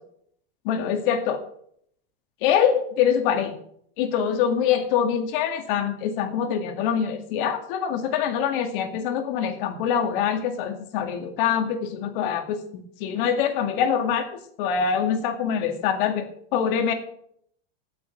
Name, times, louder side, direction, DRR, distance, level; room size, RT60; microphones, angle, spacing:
voice 1, 0.6-1.4 2.4-3.5 4.0-16.9, left 8 dB, 60° left, 5 dB, 2.2 m, -24 dB
9.2 x 8.4 x 7.9 m, 0.68 s
supercardioid pair, 135°, 29 cm